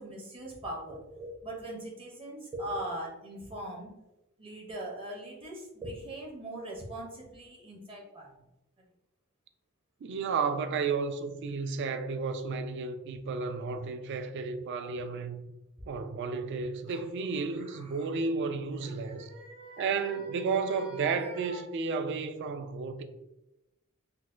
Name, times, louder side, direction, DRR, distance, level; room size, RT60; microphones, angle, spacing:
voice 1, 0.0-3.9 4.4-8.3 14.8-14.9 15.8-15.9 16.9-17.0 17.5-18.1 18.8-21.6, right 1 dB, 25° right, 0.7 m, -41 dB
voice 2, 10.0-15.4 15.9-19.3 19.8-23.0, right 5 dB, 55° right, 0.3 m, -32 dB
3.9 x 2.1 x 2.4 m
head